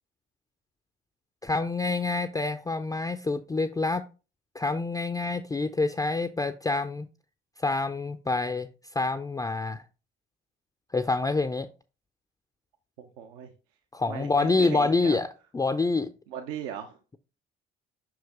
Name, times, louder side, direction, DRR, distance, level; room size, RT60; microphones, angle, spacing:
voice 1, 1.4-4.0 4.5-7.1 7.6-8.7 8.9-9.8 10.9-11.7 13.9-15.3 15.5-16.1, left 3 dB, 10° left, 0.5 m, -27 dB
voice 2, 13.0-13.5 14.1-15.2 16.3-17.0, right 9 dB, 70° right, 0.7 m, -38 dB
5.8 x 4.8 x 3.5 m
figure-of-eight pair, 55°, 31 cm